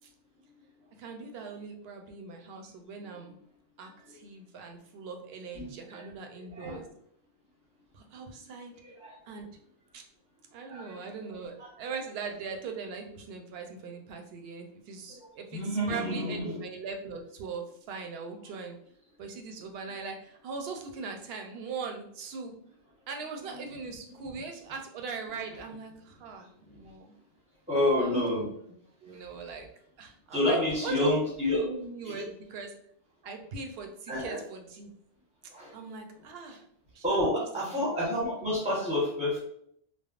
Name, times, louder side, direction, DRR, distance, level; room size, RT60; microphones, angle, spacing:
voice 1, 1.0-3.4 3.8-6.9 7.9-8.7 9.2-9.5 9.9-10.1 10.5-18.7 19.2-22.5 23.1-27.1 28.0-28.5 29.0-29.7 30.0-32.7 33.2-34.9 35.7-36.6 36.9-37.3 37.6-37.9, right 5 dB, 75° right, 4 dB, 0.8 m, -40 dB
voice 2, 5.5-6.0 6.3-6.8 8.8-9.2 10.7-11.0 11.6-11.7 15.1-15.2 15.5-16.6 27.7-28.5 29.1-29.2 30.3-31.6 32.0-32.2 34.1-34.4 35.5-35.7 37.0-39.4, left 1 dB, 5° right, -5 dB, 0.9 m, -29 dB
3.4 x 2.1 x 2.3 m, 0.68 s
omnidirectional pair, 1.0 m